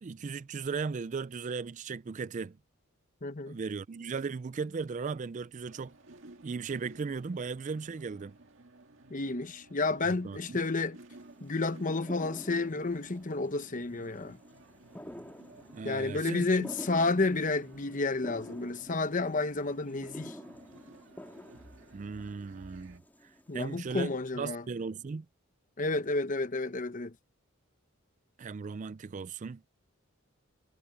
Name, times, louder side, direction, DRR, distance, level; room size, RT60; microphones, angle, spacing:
voice 1, 0.0-2.6 3.5-5.9 6.4-8.3 10.1-10.6 15.7-16.7 21.9-25.3 28.4-29.6, right 5 dB, 35° right, 0.4 m, -37 dB
voice 2, 3.2-3.6 9.1-11.0 11.4-14.4 15.8-20.4 23.5-24.6 25.8-27.1, left 3 dB, 40° left, 0.9 m, -31 dB
sound 1, 5.6-23.0, right 2 dB, 60° right, 2.1 m, -55 dB
sound 2, 11.1-24.0, equal, 10° left, 4.2 m, -49 dB
head